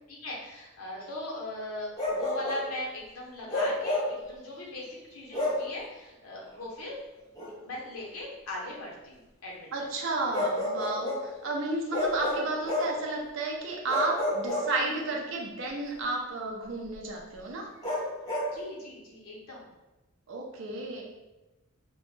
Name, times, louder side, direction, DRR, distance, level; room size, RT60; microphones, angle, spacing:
voice 1, 0.1-7.0 7.6-9.7 18.5-19.6, left 1 dB, 80° left, -3 dB, 0.7 m, -39 dB
Bark, 2.0-2.7 3.5-4.2 5.3-5.7 7.4-7.5 10.3-11.3 11.9-13.0 13.9-15.1 17.8-18.5, left 1 dB, 15° left, 0.6 m, -30 dB
voice 2, 9.7-17.7 20.3-21.0, right 2 dB, 60° right, -1 dB, 0.4 m, -32 dB
2.1 x 2.0 x 3.0 m, 1.0 s
head